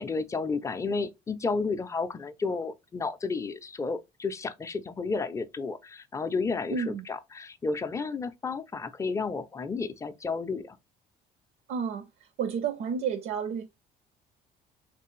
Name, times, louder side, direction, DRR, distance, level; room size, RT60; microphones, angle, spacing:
voice 1, 0.0-10.8, left 4 dB, 20° left, 0.4 m, -32 dB
voice 2, 6.7-7.1 11.7-13.6, right 6 dB, 65° right, 0.5 m, -31 dB
3.3 x 3.1 x 3.0 m
cardioid pair, 110°, 17 cm